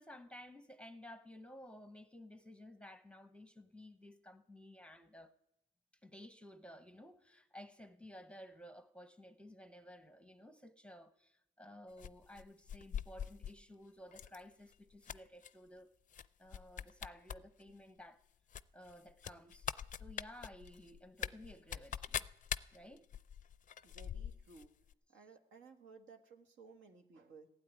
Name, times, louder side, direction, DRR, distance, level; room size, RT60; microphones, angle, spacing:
voice 1, 0.0-5.3 6.0-15.9 16.4-18.2 18.7-19.7 19.9-22.3 22.7-23.1, left 1 dB, 5° left, 0.8 m, -55 dB
sound 1, 12.0-13.6 14.1-14.4 14.7-15.5 16.1-16.3 16.5-17.4 17.7-17.8 18.5-24.7 24.9-25.0, left 9 dB, 40° left, 0.4 m, -43 dB
voice 2, 23.8-24.7 25.1-27.5, right 4 dB, 75° right, 1.7 m, -58 dB
15.5 x 8.6 x 9.5 m
cardioid pair, 90°, 20 cm